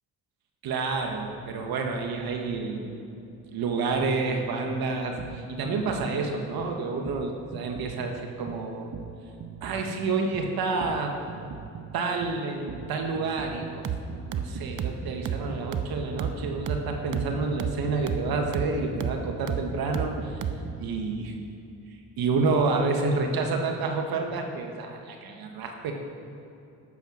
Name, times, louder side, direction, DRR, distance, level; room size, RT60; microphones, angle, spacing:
voice 1, 0.6-3.0 3.5-8.9 9.6-11.1 11.9-20.4 20.8-21.3 22.2-25.9, right 3 dB, 75° right, 3 dB, 1.3 m, -29 dB
sound 1, 5.2-20.8, right 7 dB, 55° right, 0.8 m, -35 dB
11.5 x 8.6 x 6.2 m, 2.6 s
cardioid pair, 70°, 36 cm